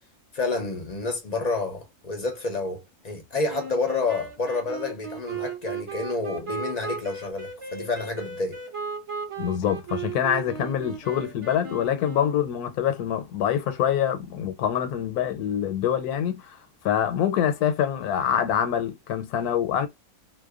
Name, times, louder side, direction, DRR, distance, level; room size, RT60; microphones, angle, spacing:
voice 1, 0.3-8.6, left 3 dB, 50° left, 0.4 m, -29 dB
sound 1, 3.5-12.7, right 5 dB, 35° right, 0.5 m, -36 dB
voice 2, 9.4-16.6 16.8-19.9, left 9 dB, 85° left, 1.1 m, -25 dB
2.5 x 2.1 x 2.2 m
omnidirectional pair, 1.6 m